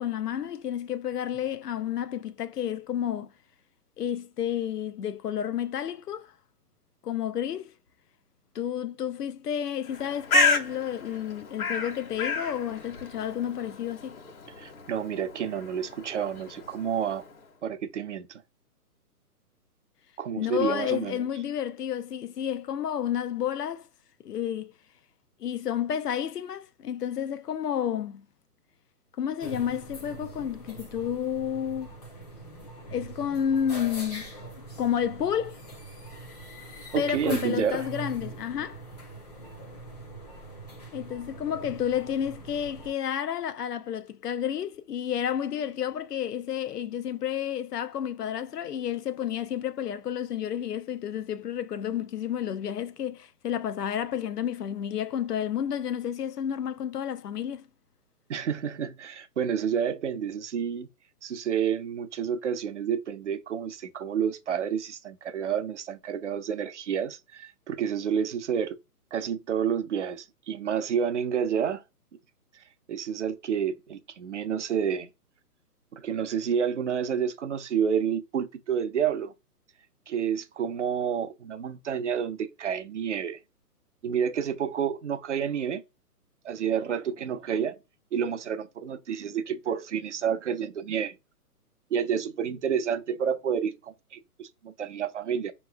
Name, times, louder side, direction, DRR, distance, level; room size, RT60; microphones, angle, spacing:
voice 1, 0.0-3.3 4.0-6.3 7.0-7.7 8.5-14.2 20.4-23.9 24.2-24.7 25.4-28.2 29.2-31.9 32.9-34.3 34.8-35.6 36.9-38.8 40.9-57.7, left 9 dB, 80° left, 0.7 m, -31 dB
Bird, 9.8-17.4, left 3 dB, 65° left, 1.5 m, -31 dB
voice 2, 14.6-17.2 17.6-18.4 20.2-21.2 36.9-37.9 58.3-60.9 61.2-68.8 69.1-71.8 72.9-75.1 75.9-79.3 80.1-83.4 84.0-85.8 86.4-87.8 88.1-91.2 91.9-95.5, right 8 dB, 50° right, 0.7 m, -29 dB
sound 1, 29.4-42.9, right 1 dB, 25° left, 0.7 m, -43 dB
5.3 x 3.0 x 2.3 m
hypercardioid pair, 160°, 47 cm